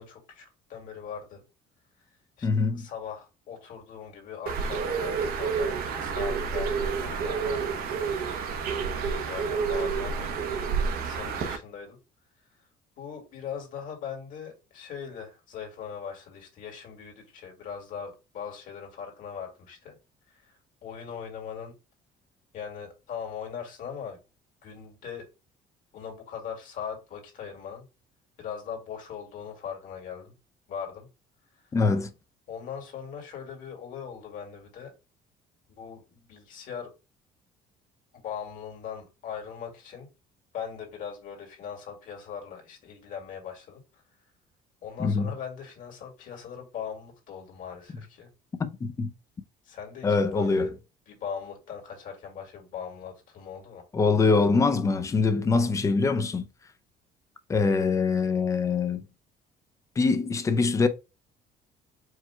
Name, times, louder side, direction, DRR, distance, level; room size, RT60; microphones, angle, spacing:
voice 1, 0.0-1.4 2.4-7.8 8.7-10.3 10.9-12.0 12.6-12.7 13.0-20.0 20.3-21.7 22.5-24.2 24.6-25.3 25.9-27.9 28.4-30.3 30.7-31.1 31.6-31.8 32.5-34.9 35.8-36.9 38.1-40.1 40.5-44.0 44.8-48.3 49.6-50.7 51.1-53.8, left 7 dB, 55° left, 1.8 m, -40 dB
voice 2, 2.4-2.9 31.7-32.1 45.0-45.3 48.6-49.1 50.0-50.7 53.9-56.4 57.5-59.0 60.0-60.9, left 4 dB, 20° left, 0.4 m, -23 dB
Bird, 4.5-11.6, right 5 dB, 65° right, 0.8 m, -29 dB
4.7 x 2.2 x 4.3 m
cardioid pair, 155°, 16 cm